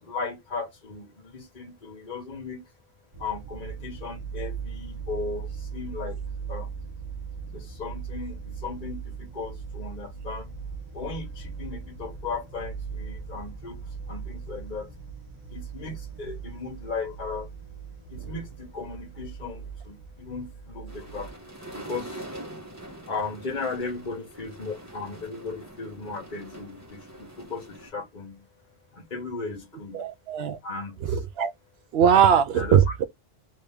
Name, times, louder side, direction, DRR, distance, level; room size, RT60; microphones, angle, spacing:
voice 1, 0.0-2.6 3.2-6.2 6.5-6.7 7.5-10.5 10.9-13.8 14.1-14.9 15.5-17.5 18.1-21.3 21.7-22.3 23.1-28.4 28.9-30.1 30.6-31.1 32.5-32.8, left 4 dB, 50° left, 1.2 m, -36 dB
sound 1, 3.1-21.3, right 6 dB, 35° right, 0.8 m, -39 dB
sound 2, 20.9-27.9, right 1 dB, 15° right, 1.3 m, -43 dB
voice 2, 29.9-30.6 31.0-31.5 31.9-33.1, right 8 dB, 75° right, 0.8 m, -21 dB
2.8 x 2.8 x 3.5 m
omnidirectional pair, 1.1 m